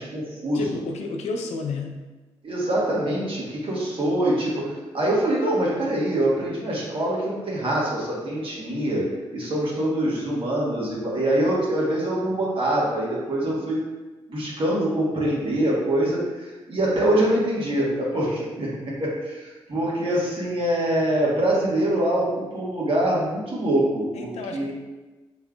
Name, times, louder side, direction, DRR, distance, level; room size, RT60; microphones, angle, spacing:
voice 1, 0.0-0.8 2.4-9.0 9.3-13.8 14.3-24.7, right 1 dB, 50° right, -5 dB, 1.5 m, -24 dB
voice 2, 0.5-1.9 24.1-24.7, left 3 dB, 75° left, 2 dB, 0.5 m, -31 dB
4.2 x 3.5 x 2.4 m, 1.2 s
supercardioid pair, 45°, 12 cm